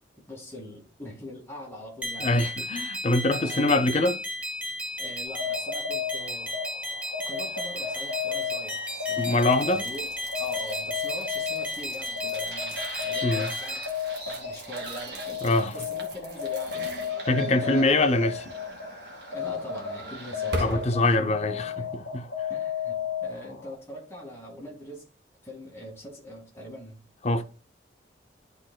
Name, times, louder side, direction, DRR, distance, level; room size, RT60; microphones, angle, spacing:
voice 1, 0.3-2.4 3.4-3.9 5.0-6.6 7.3-9.3 9.7-10.1 10.4-13.8 14.3-16.8 17.4-18.0 19.3-22.1 22.5-25.1 25.4-27.1, equal, 15° left, 2.0 m, -42 dB
sound 1, 2.0-13.9, equal, 5° right, 1.0 m, -34 dB
voice 2, 2.2-4.2 9.2-9.8 13.2-13.5 15.4-15.7 17.3-18.3 20.6-21.7 22.1-22.2 27.2-27.4, left 2 dB, 35° left, 0.5 m, -23 dB
sound 2, 5.3-23.8, left 8 dB, 75° left, 1.3 m, -34 dB
sound 3, 7.3-20.9, right 2 dB, 65° right, 1.7 m, -41 dB
11.0 x 4.0 x 2.2 m
head